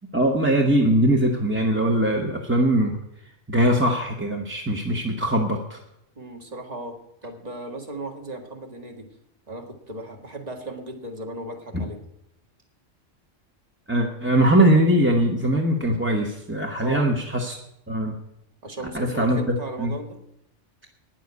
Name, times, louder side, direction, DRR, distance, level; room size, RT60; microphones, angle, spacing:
voice 1, 0.1-2.9 3.5-5.8 13.9-17.6 17.9-18.1 18.9-19.9, right 1 dB, 10° right, 0 dB, 1.0 m, -21 dB
voice 2, 6.2-9.1 9.5-12.0 16.8-17.1 18.6-20.2, right 1 dB, 30° right, 3 dB, 1.8 m, -36 dB
9.8 x 7.6 x 9.5 m, 0.80 s
omnidirectional pair, 1.3 m